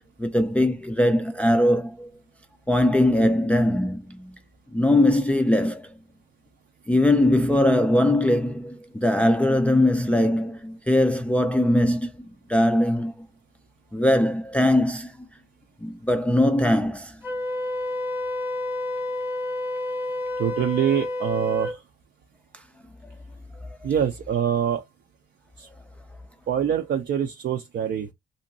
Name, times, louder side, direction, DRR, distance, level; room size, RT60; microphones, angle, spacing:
voice 1, 0.0-2.1 2.7-4.3 4.7-5.9 6.9-12.1 12.5-13.3 13.9-15.3 15.8-17.2, left 1 dB, 5° left, 0.4 m, -21 dB
Wind instrument woodwind instrument, 17.2-21.8, left 1 dB, 10° right, 0.9 m, -29 dB
voice 2, 20.4-21.8 23.8-24.8 25.6-25.7 26.5-28.1, right 9 dB, 60° right, 0.5 m, -25 dB
2.8 x 2.6 x 2.6 m
cardioid pair, 90°, 20 cm